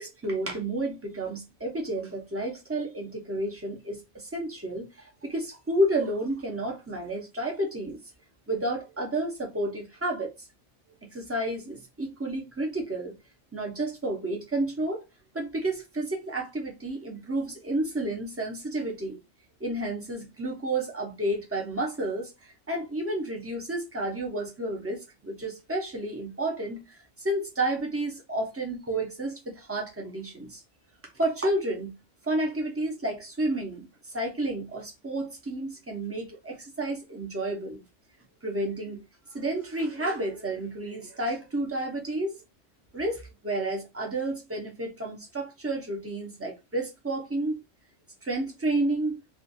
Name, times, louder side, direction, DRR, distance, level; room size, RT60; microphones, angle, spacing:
voice 1, 0.0-8.0 8.5-10.3 11.0-13.2 13.5-15.0 15.3-19.2 19.6-30.6 31.1-31.9 32.2-37.8 38.4-39.0 39.3-42.4 42.9-47.6 48.2-49.2, right 1 dB, 20° right, 0.4 m, -31 dB
2.5 x 2.3 x 2.5 m
omnidirectional pair, 1.3 m